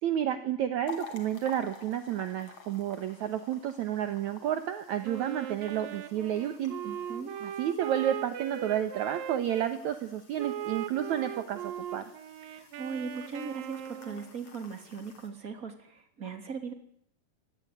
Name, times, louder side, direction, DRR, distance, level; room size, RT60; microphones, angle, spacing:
voice 1, 0.0-6.7 7.4-12.0, right 10 dB, 65° right, 9 dB, 2.4 m, -31 dB
sound 1, 0.9-15.3, left 5 dB, 45° left, 4.3 m, -51 dB
Wind instrument woodwind instrument, 5.0-9.7 10.4-14.3, right 10 dB, 85° right, 3.2 m, -39 dB
voice 2, 6.8-7.3 12.4-16.7, right 5 dB, 25° right, 7 dB, 3.5 m, -39 dB
25.5 x 19.5 x 9.6 m, 0.69 s
omnidirectional pair, 4.0 m